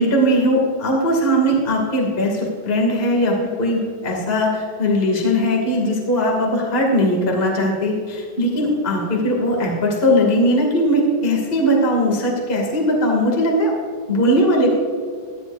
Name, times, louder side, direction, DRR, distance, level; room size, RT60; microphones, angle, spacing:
voice 1, 0.0-13.7 14.1-14.8, equal, 20° left, -1 dB, 1.9 m, -19 dB
15.5 x 12.5 x 2.6 m, 2.1 s
omnidirectional pair, 4.2 m